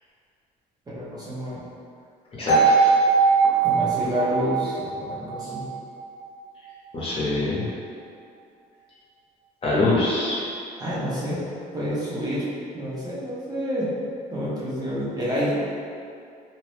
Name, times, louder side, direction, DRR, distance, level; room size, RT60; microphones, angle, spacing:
voice 1, 0.9-1.7 3.6-5.7 7.3-7.5 10.8-11.5 11.7-12.4 12.7-13.9 14.3-15.5, equal, 25° right, -9 dB, 0.7 m, -28 dB
voice 2, 2.4-2.9 6.9-7.6 9.6-10.4, left 2 dB, 35° left, -8 dB, 0.9 m, -24 dB
sound 1, 2.5-6.5, right 4 dB, 70° left, 0.8 m, -21 dB
2.7 x 2.3 x 3.3 m, 2.4 s
cardioid pair, 110°, 17 cm